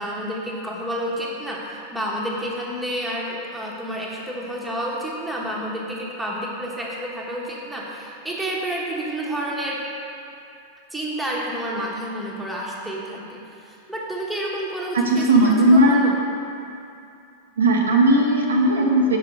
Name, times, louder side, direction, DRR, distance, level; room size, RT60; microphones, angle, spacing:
voice 1, 0.0-9.8 10.9-16.2, right 1 dB, 5° right, -4 dB, 1.2 m, -30 dB
voice 2, 14.9-16.0 17.6-19.2, right 1 dB, 70° right, 0 dB, 0.7 m, -17 dB
6.5 x 4.8 x 5.1 m, 2.6 s
figure-of-eight pair, 90°, 0 cm